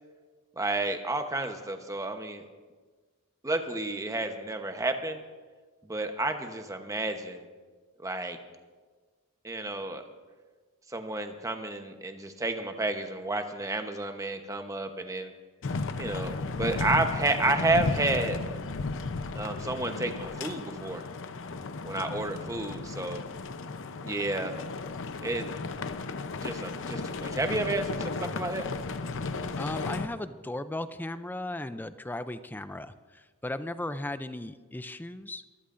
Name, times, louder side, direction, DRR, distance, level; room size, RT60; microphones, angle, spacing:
voice 1, 0.6-2.4 3.4-5.2 5.9-7.5 8.0-8.4 9.4-10.0 10.9-15.3 16.0-18.4 19.3-21.0 21.8-23.3 24.0-24.6 25.2-25.5 26.4-28.6, right 2 dB, 15° right, 6 dB, 1.0 m, -31 dB
sound 1, 15.6-30.1, left 3 dB, 60° left, 0.7 m, -34 dB
voice 2, 29.5-35.4, left 1 dB, 10° left, 12 dB, 0.4 m, -36 dB
24.0 x 14.0 x 2.6 m, 1.4 s
head